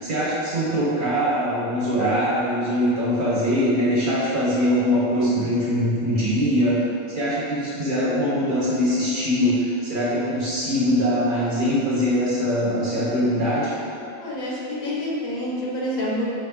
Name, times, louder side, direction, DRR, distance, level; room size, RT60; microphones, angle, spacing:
voice 1, 0.0-6.8 7.1-13.7, equal, 40° right, -8 dB, 1.0 m, -22 dB
voice 2, 14.2-16.3, left 1 dB, 85° left, -6 dB, 1.4 m, -27 dB
5.1 x 2.8 x 3.7 m, 2.7 s
omnidirectional pair, 1.4 m